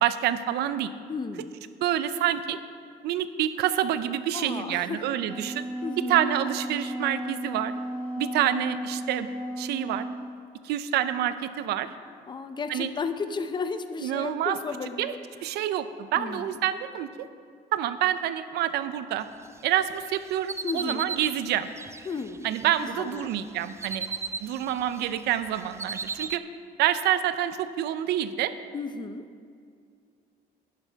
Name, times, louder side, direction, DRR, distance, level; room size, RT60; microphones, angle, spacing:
voice 1, 0.0-0.9 1.8-2.6 3.0-5.6 6.1-7.7 8.2-9.3 9.6-10.1 10.6-11.9 12.7-12.9 14.0-14.6 15.0-15.1 15.4-17.1 17.7-19.3 19.6-21.7 22.4-24.1 24.4-26.4 26.8-28.5, right 11 dB, 75° right, 12 dB, 0.5 m, -27 dB
voice 2, 1.1-1.5 4.3-5.0 5.8-6.2 12.3-15.2 16.1-16.5 20.6-21.1 22.1-22.4 22.8-23.3 28.7-29.2, left 4 dB, 25° left, 9 dB, 0.6 m, -33 dB
Wind instrument woodwind instrument, 5.0-10.2, right 1 dB, 10° left, 1.2 m, -34 dB
sound 1, 19.6-22.9 23.3-25.1 25.3-26.4, right 5 dB, 15° right, 0.3 m, -36 dB
11.0 x 10.5 x 3.5 m, 2.2 s
cardioid pair, 110°, 17 cm